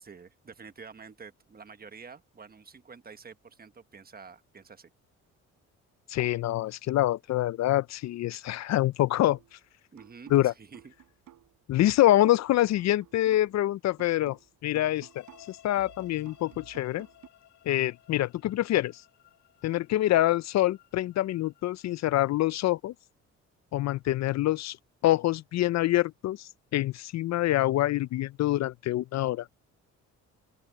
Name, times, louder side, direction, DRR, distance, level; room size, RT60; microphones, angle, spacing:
voice 1, 0.0-4.9 9.9-10.9, right 5 dB, 30° right, 1.4 m, -49 dB
voice 2, 6.1-9.4 10.3-10.5 11.7-17.1 17.7-19.0 19.6-22.9 23.7-24.8 25.0-29.5, left 14 dB, 60° left, 0.5 m, -26 dB
sound 1, 9.3-9.6 10.0-13.7 14.0-17.3, right 12 dB, 75° right, 4.1 m, -54 dB
sound 2, 15.0-22.8, left 12 dB, 80° left, 5.3 m, -58 dB
open air
cardioid pair, 90°, 30 cm